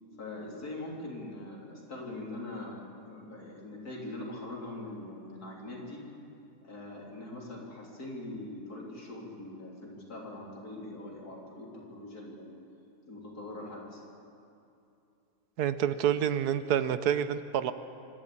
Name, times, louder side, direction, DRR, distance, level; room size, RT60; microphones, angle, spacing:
voice 1, 0.2-2.8 3.1-6.0 6.6-12.5 13.1-14.0, left 2 dB, 75° left, -3 dB, 4.1 m, -42 dB
voice 2, 15.6-17.7, right 9 dB, 85° right, 12 dB, 1.4 m, -28 dB
25.5 x 12.0 x 8.8 m, 2.6 s
omnidirectional pair, 1.6 m